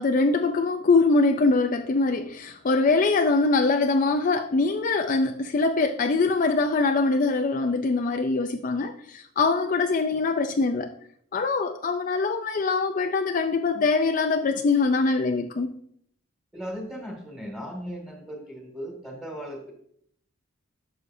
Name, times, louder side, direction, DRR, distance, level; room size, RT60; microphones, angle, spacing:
voice 1, 0.0-10.9 11.3-15.8, left 3 dB, 40° left, 6 dB, 0.4 m, -23 dB
voice 2, 16.5-19.7, equal, ahead, 0 dB, 2.1 m, -37 dB
11.5 x 6.8 x 2.6 m, 0.67 s
head